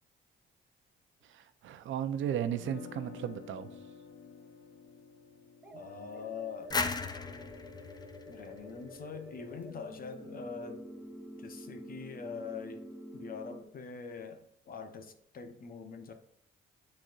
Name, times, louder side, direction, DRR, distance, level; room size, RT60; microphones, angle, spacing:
voice 1, 1.2-3.7, right 9 dB, 75° right, 0.6 m, -35 dB
sound 1, 2.5-8.5, left 6 dB, 90° left, 0.8 m, -51 dB
sound 2, 5.6-13.6, equal, 5° right, 0.9 m, -48 dB
voice 2, 5.7-6.7 8.3-10.9 11.4-16.1, left 5 dB, 45° left, 0.9 m, -43 dB
sound 3, 6.7-9.4, left 4 dB, 20° left, 0.5 m, -37 dB
9.0 x 4.2 x 2.5 m
cardioid pair, 115°, 20 cm